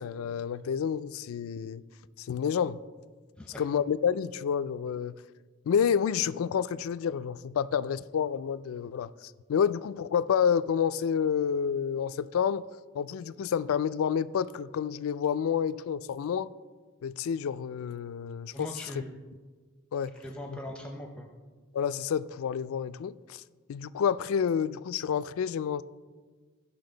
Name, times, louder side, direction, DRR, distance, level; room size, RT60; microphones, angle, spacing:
voice 1, 0.0-1.8 2.2-2.8 3.6-5.1 5.7-12.6 12.9-16.5 17.0-18.7 19.9-20.2 21.7-23.4 23.7-25.8, left 7 dB, 70° left, 0.3 m, -29 dB
voice 2, 18.5-19.2 20.1-21.3, equal, 5° left, 0.6 m, -40 dB
15.5 x 5.7 x 3.9 m
head